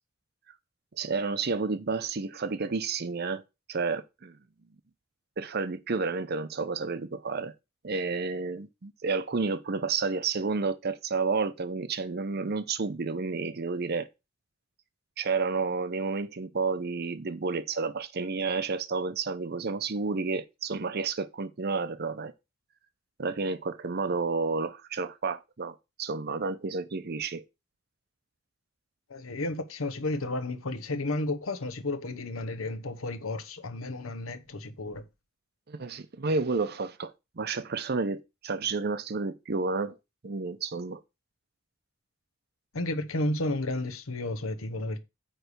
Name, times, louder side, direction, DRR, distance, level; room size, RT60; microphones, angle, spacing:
voice 1, 1.0-3.4 3.7-4.4 5.4-7.5 7.8-14.1 15.2-22.3 23.2-27.4 35.7-39.9 40.2-41.0, right 4 dB, 50° right, 0.7 m, -31 dB
voice 2, 29.1-35.0 42.7-45.0, left 2 dB, 85° left, 1.1 m, -32 dB
9.0 x 3.3 x 6.7 m
head